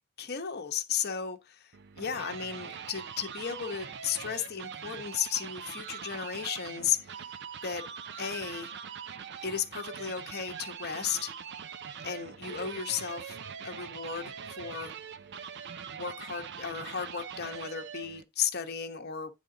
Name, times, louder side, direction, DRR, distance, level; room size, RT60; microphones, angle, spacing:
voice 1, 0.2-1.7 2.0-7.3 7.6-7.8 8.2-8.7 9.4-11.3 12.0-13.4 13.6-15.0 15.9-19.3, left 8 dB, 45° left, 1.0 m, -34 dB
sound 1, 1.7-18.2, right 7 dB, 50° right, 0.5 m, -42 dB
9.9 x 3.7 x 3.8 m
head